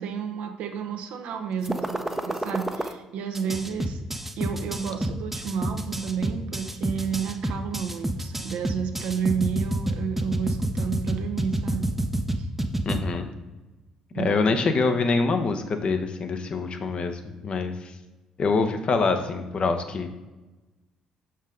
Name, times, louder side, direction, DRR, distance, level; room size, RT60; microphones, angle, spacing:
voice 1, 0.0-4.0 4.4-11.9 12.4-12.5 14.1-14.5, right 7 dB, 65° right, 6 dB, 0.7 m, -31 dB
sound 1, 1.6-2.9 3.3-13.0, right 1 dB, 10° right, 0.7 m, -28 dB
voice 2, 12.9-13.3 14.1-17.9 18.4-20.1, left 4 dB, 45° left, 7 dB, 0.8 m, -25 dB
6.4 x 5.5 x 3.7 m, 1.1 s
figure-of-eight pair, 45°, 2 cm